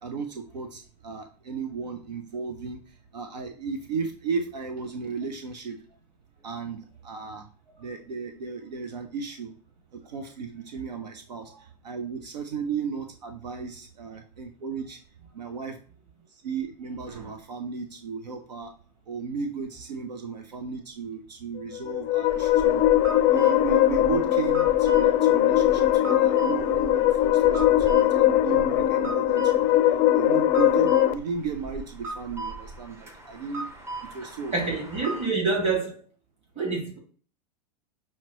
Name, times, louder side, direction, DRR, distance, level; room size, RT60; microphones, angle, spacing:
voice 1, 0.0-2.8 3.1-5.8 6.4-7.5 7.8-9.5 10.0-15.0 15.3-15.8 16.3-18.7 19.1-22.8 23.3-29.7 30.1-33.6 34.1-34.7, right 5 dB, 80° right, 0.5 m, -34 dB
sound 1, 21.7-31.1, left 13 dB, 35° left, 0.4 m, -21 dB
sound 2, 22.3-35.3, right 2 dB, 10° right, 0.6 m, -38 dB
voice 2, 34.5-36.0 36.6-37.0, right 3 dB, 30° right, 1.9 m, -27 dB
5.6 x 2.1 x 2.9 m
hypercardioid pair, 100°, 21 cm